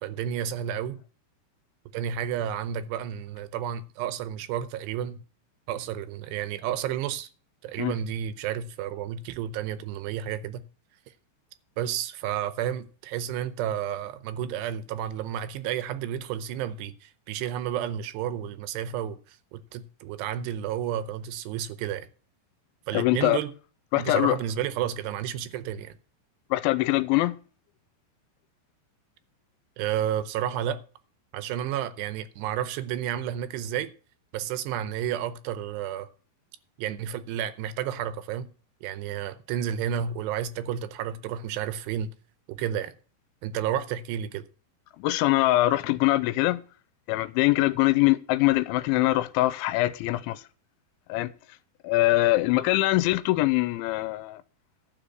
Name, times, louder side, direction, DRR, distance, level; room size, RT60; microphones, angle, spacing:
voice 1, 0.0-1.0 1.9-5.2 5.7-7.3 7.6-10.6 11.8-22.1 22.9-23.5 24.0-26.0 29.8-30.8 31.3-33.9 34.3-36.1 36.8-38.5 38.8-42.1 42.5-42.9 43.4-44.4, right 10 dB, 80° right, 2.7 m, -31 dB
voice 2, 22.9-23.4 23.9-24.4 26.5-27.4 45.0-46.6 47.1-50.4 51.1-51.3 51.8-54.4, left 18 dB, 90° left, 3.1 m, -23 dB
12.5 x 4.8 x 7.8 m
omnidirectional pair, 5.3 m